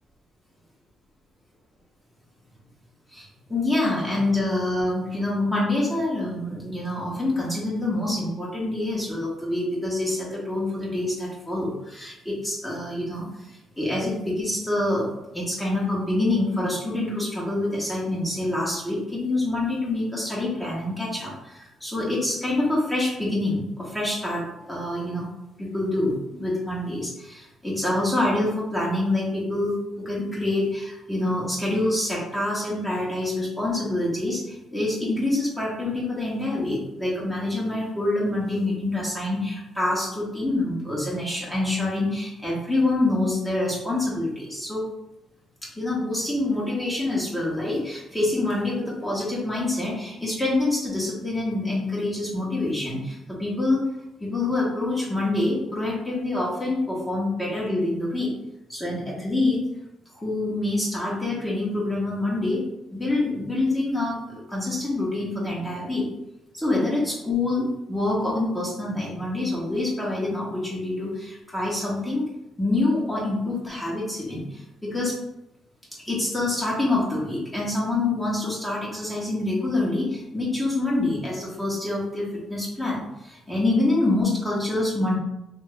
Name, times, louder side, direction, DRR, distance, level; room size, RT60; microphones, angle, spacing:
voice 1, 3.1-25.3 25.6-44.8 45.8-53.8 54.2-58.3 58.7-59.6 60.1-62.6 62.9-66.1 66.5-72.2 72.6-75.1 76.1-85.2, left 2 dB, 10° left, -5 dB, 1.0 m, -26 dB
2.8 x 2.5 x 3.3 m, 0.91 s
cardioid pair, 90°, 0 cm